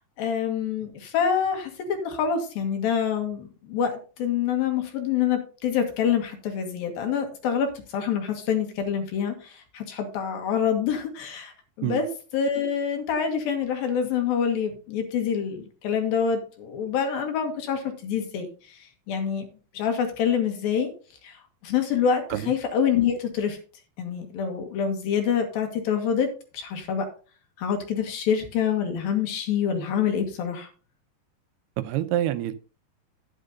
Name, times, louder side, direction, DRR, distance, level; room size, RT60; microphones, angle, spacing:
voice 1, 0.2-3.9 4.2-7.7 7.9-11.5 11.8-12.1 12.3-18.8 19.1-19.4 19.7-20.9 21.2-21.4 21.6-23.6 24.0-26.3 26.5-27.1 27.6-30.7, left 7 dB, 65° left, 3.3 m, -26 dB
voice 2, 31.8-32.5, right 13 dB, 80° right, 2.7 m, -26 dB
11.5 x 10.0 x 2.7 m
omnidirectional pair, 4.7 m